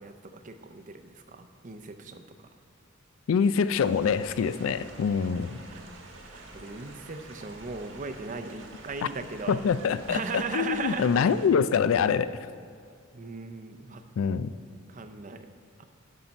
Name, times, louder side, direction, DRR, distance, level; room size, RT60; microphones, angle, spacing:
voice 1, 0.0-2.2 5.7-5.8 6.3-9.6 10.1-11.1 13.1-14.0 14.9-15.5 15.8-15.9, right 4 dB, 40° right, 8 dB, 0.6 m, -37 dB
voice 2, 3.3-5.6 9.5-12.4 14.2-14.5, left 6 dB, 80° left, 15 dB, 0.4 m, -25 dB
sound 1, 3.7-11.5, right 2 dB, 70° right, 1.3 m, -48 dB
11.5 x 5.7 x 5.3 m, 2.3 s
head